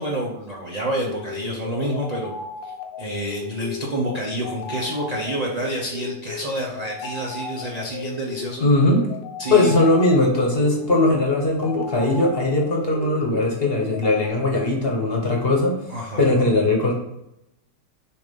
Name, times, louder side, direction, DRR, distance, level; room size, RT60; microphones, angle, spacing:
voice 1, 0.0-2.3 2.6-2.7 3.0-8.6 9.4-9.7 15.9-16.2, right 1 dB, 55° right, -3 dB, 0.4 m, -28 dB
sound 1, 0.8-14.3, left 5 dB, 90° left, 1.5 m, -35 dB
voice 2, 8.6-9.0 9.5-15.8 16.2-16.9, left 2 dB, 40° left, 0 dB, 1.0 m, -19 dB
6.9 x 2.6 x 5.2 m, 0.85 s
omnidirectional pair, 1.9 m